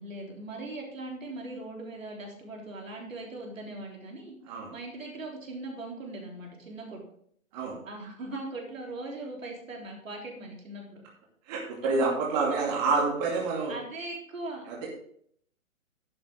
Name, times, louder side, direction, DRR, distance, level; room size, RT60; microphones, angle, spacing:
voice 1, 0.0-4.3 4.7-7.0 7.9-11.0 11.8-11.9 13.7-14.6, right 2 dB, 70° right, -1 dB, 3.6 m, -40 dB
voice 2, 11.5-13.7 14.7-14.9, right 4 dB, 30° right, -3 dB, 2.6 m, -28 dB
11.0 x 8.3 x 3.7 m, 0.64 s
figure-of-eight pair, 130°, 41 cm